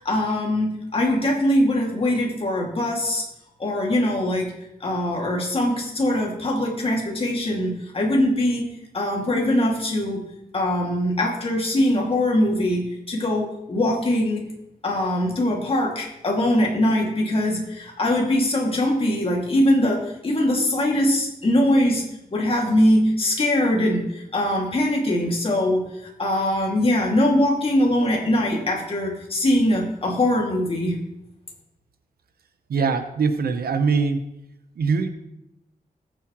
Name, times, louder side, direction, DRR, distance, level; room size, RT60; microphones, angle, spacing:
voice 1, 0.0-3.2 3.6-4.5 4.8-10.2 10.5-14.5 14.8-22.0 22.3-25.9 26.2-31.0, left 1 dB, 35° left, -1 dB, 2.3 m, -22 dB
voice 2, 32.7-34.2 34.8-35.1, right 5 dB, 80° right, 8 dB, 0.9 m, -22 dB
19.5 x 7.7 x 3.1 m, 0.85 s
wide cardioid pair, 140°, 16 cm